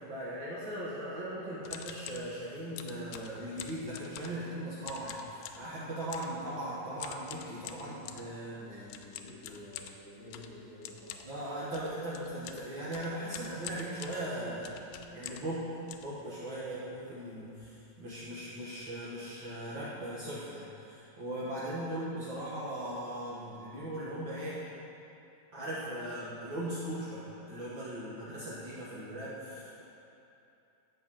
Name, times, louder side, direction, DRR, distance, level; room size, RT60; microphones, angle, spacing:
voice 1, 0.0-8.8 11.2-14.9 15.1-15.7 16.0-24.6 25.5-29.8, right 1 dB, 75° right, -8 dB, 1.0 m, -39 dB
sound 1, 1.6-2.3 2.8-4.5 4.8-5.7 6.1-6.4 7.0-8.3 8.9-15.6 15.9-16.7 17.2-17.3 17.5-17.8 18.1-18.3 18.8-18.9 19.2-19.5, left 10 dB, 80° left, 2.2 m, -46 dB
voice 2, 8.6-11.2, left 1 dB, 65° left, -9 dB, 0.5 m, -50 dB
8.5 x 5.8 x 7.4 m, 2.8 s
omnidirectional pair, 4.0 m